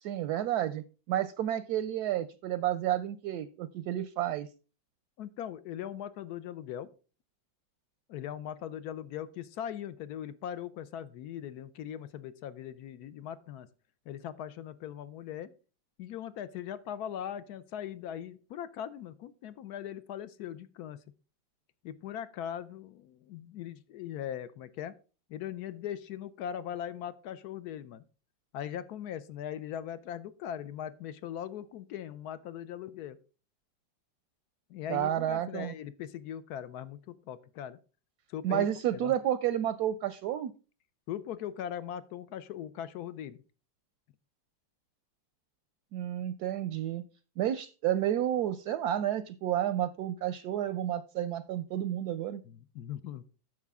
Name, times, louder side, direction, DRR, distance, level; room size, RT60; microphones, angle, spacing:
voice 1, 0.0-4.5 34.9-35.7 38.4-40.5 45.9-47.0 47.4-52.4, right 11 dB, 70° right, 14 dB, 1.0 m, -31 dB
voice 2, 5.2-6.9 8.1-13.7 14.1-15.5 16.0-21.0 21.8-24.9 25.3-28.0 28.5-33.2 34.7-37.8 38.3-38.7 38.9-39.1 41.1-43.4 52.5-53.2, left 10 dB, 70° left, 15 dB, 1.0 m, -40 dB
9.9 x 6.8 x 3.5 m, 0.35 s
omnidirectional pair, 2.0 m